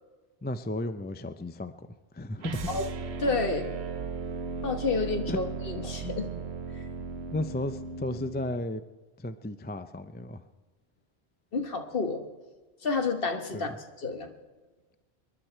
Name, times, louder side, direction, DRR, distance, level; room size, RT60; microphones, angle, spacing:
voice 1, 0.4-1.7 2.1-2.7 5.3-5.4 7.3-8.8 9.2-10.5 13.5-13.7, left 1 dB, 15° left, 11 dB, 0.4 m, -34 dB
sound 1, 2.4-8.6, right 4 dB, 75° right, 1.1 m, -36 dB
voice 2, 3.2-3.8 4.6-6.3 6.7-6.8 11.5-12.2 12.8-13.7 14.0-14.3, left 4 dB, 60° left, 6 dB, 1.5 m, -30 dB
26.5 x 11.0 x 4.5 m, 1.2 s
omnidirectional pair, 1.1 m